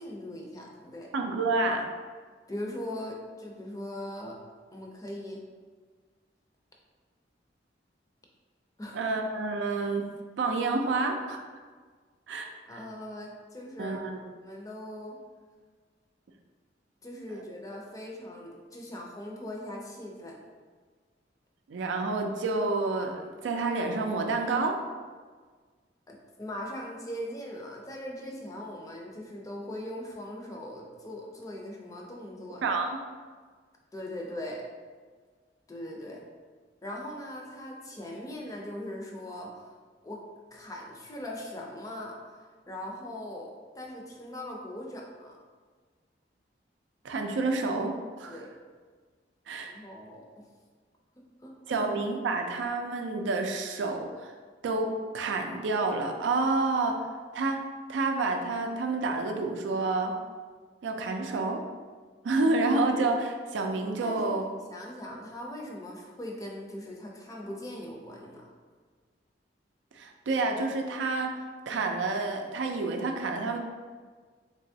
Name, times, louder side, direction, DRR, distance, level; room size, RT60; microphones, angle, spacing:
voice 1, 0.0-1.1 2.5-4.4 4.7-5.4 8.8-9.0 12.7-14.0 14.4-15.2 17.0-20.4 26.1-32.7 33.9-34.6 35.7-36.2 36.8-39.7 40.0-40.2 40.5-42.2 42.7-45.4 48.3-48.5 49.6-50.4 51.4-51.9 64.0-68.5, left 1 dB, 20° left, -1 dB, 0.5 m, -40 dB
voice 2, 1.1-1.8 8.9-10.1 10.4-11.4 12.3-12.8 13.8-14.2 21.7-24.8 32.6-33.0 47.0-48.4 49.5-49.7 51.7-54.3 54.6-57.1 57.3-57.6 57.9-60.2 60.8-61.6 62.2-64.4 70.0-71.4 71.7-73.6, right 3 dB, 85° right, 4 dB, 0.4 m, -29 dB
3.3 x 3.0 x 2.7 m, 1.5 s
head